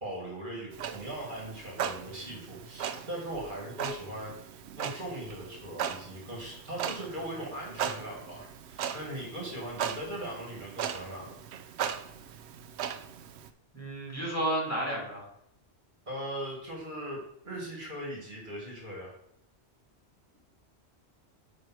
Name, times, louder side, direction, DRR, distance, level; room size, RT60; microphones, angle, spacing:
voice 1, 0.0-4.5 4.8-11.4 16.1-19.2, right 1 dB, 45° right, -2 dB, 2.0 m, -39 dB
Clock, 0.7-13.5, right 8 dB, 75° right, 0.8 m, -38 dB
voice 2, 13.7-15.3, right 1 dB, 15° left, -4 dB, 2.3 m, -31 dB
7.5 x 3.4 x 6.1 m, 0.77 s
omnidirectional pair, 1.1 m